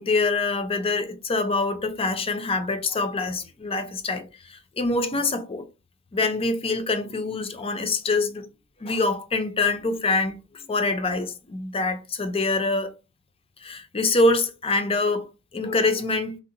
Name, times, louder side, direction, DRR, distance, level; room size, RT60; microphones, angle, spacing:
voice 1, 0.0-5.7 6.1-8.5 8.8-12.9 13.6-15.3 15.5-16.4, left 3 dB, 25° left, 0.5 m, -25 dB
2.7 x 2.1 x 3.8 m
head